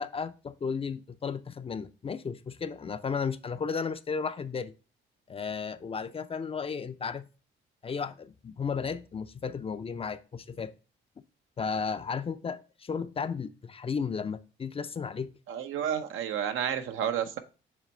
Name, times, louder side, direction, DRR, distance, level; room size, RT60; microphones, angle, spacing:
voice 1, 0.0-4.7 5.3-7.3 7.8-10.7 11.6-15.3, left 5 dB, 30° left, 0.4 m, -34 dB
voice 2, 15.5-17.4, right 9 dB, 80° right, 0.7 m, -31 dB
7.3 x 3.0 x 4.3 m
cardioid pair, 90°, 20 cm